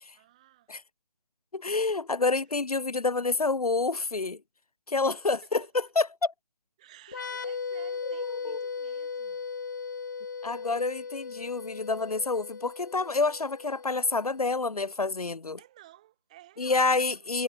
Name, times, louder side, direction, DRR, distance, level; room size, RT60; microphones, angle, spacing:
voice 1, 0.2-0.7 2.2-2.4 5.4-5.7 6.8-9.5 15.6-17.4, right 14 dB, 10° right, 3.5 m, -54 dB
voice 2, 1.5-4.4 4.9-5.6 6.0-6.3 8.1-8.6 10.4-15.6 16.6-17.4, left 3 dB, 75° left, 2.8 m, -28 dB
sound 1, 7.1-14.6, left 5 dB, 30° left, 2.6 m, -37 dB
hypercardioid pair, 180°, 19 cm